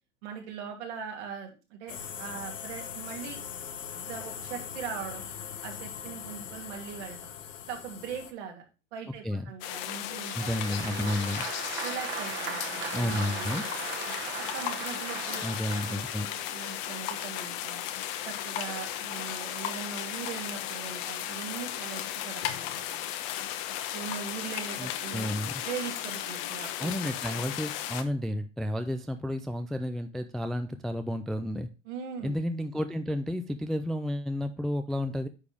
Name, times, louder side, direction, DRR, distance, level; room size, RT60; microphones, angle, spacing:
voice 1, 0.2-3.4 4.0-5.2 5.6-7.3 7.7-8.7 8.9-11.3 11.8-13.8 14.3-15.4 15.8-17.8 18.2-23.1 23.9-25.3 25.6-27.1 31.8-32.4, right 7 dB, 65° right, 2 dB, 2.8 m, -40 dB
sound 1, 1.9-8.3, left 8 dB, 85° left, 1.1 m, -41 dB
sound 2, 9.6-28.0, left 11 dB, 55° left, 1.1 m, -35 dB
voice 2, 10.3-11.4 12.9-13.6 15.4-16.3 24.8-25.6 26.8-31.7 32.2-35.3, left 1 dB, ahead, 8 dB, 0.3 m, -31 dB
Applause, 10.3-16.3, right 6 dB, 30° right, 1.4 m, -38 dB
9.5 x 4.9 x 3.5 m, 0.30 s
hypercardioid pair, 100°, 37 cm